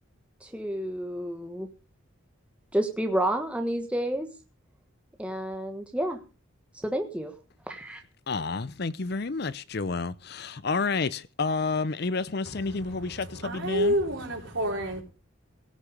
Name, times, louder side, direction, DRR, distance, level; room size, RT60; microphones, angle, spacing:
voice 1, 0.4-1.7 2.7-4.3 5.2-6.2 6.8-7.3 7.7-8.0, right 1 dB, 5° right, 1.4 m, -30 dB
voice 2, 8.3-13.9, left 4 dB, 50° left, 0.6 m, -30 dB
voice 3, 12.5-15.0, equal, 65° right, 3.9 m, -29 dB
17.0 x 6.9 x 6.5 m
head